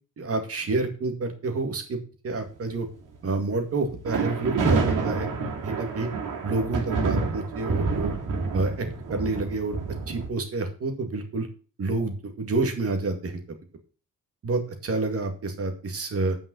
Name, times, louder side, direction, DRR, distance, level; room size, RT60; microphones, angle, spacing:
voice 1, 0.2-2.9 3.2-5.3 5.6-6.1 6.4-8.1 8.5-9.8 10.1-11.5 11.8-13.6 14.4-16.4, right 3 dB, 50° right, 5 dB, 2.1 m, -28 dB
sound 1, 3.9-10.3, right 4 dB, 85° right, 3.0 m, -28 dB
8.9 x 5.6 x 6.0 m, 0.38 s
wide cardioid pair, 155°, 31 cm